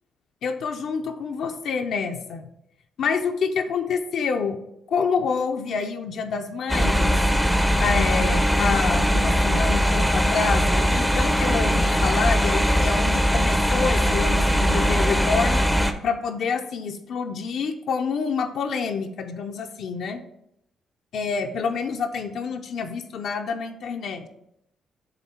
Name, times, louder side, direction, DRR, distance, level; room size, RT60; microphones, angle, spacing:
voice 1, 0.4-2.5 3.0-4.6 4.9-7.2 7.8-15.6 16.0-20.2 21.1-24.3, left 5 dB, 70° left, 4 dB, 0.6 m, -27 dB
sound 1, 6.7-15.9, equal, ahead, 0.6 m, -20 dB
8.1 x 3.3 x 4.3 m, 0.79 s
cardioid pair, 90°, 0 cm